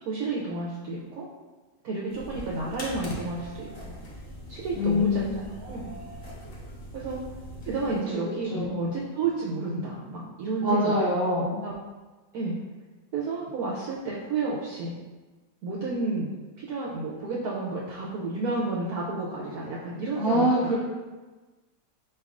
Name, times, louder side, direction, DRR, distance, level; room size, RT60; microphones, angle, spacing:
voice 1, 0.1-1.3 1.8-3.7 4.5-5.3 5.6-5.9 6.9-7.2 7.6-11.0 11.6-11.7 12.3-12.6 13.1-14.9 15.6-16.3 16.6-20.5, right 3 dB, 70° right, -4 dB, 0.9 m, -31 dB
sound 1, 2.1-8.0, equal, 60° left, 0.6 m, -41 dB
voice 2, 4.7-5.4 8.4-8.8 10.6-11.6 20.2-20.7, left 1 dB, 5° right, -8 dB, 1.0 m, -24 dB
4.6 x 3.3 x 2.4 m, 1.2 s
omnidirectional pair, 1.9 m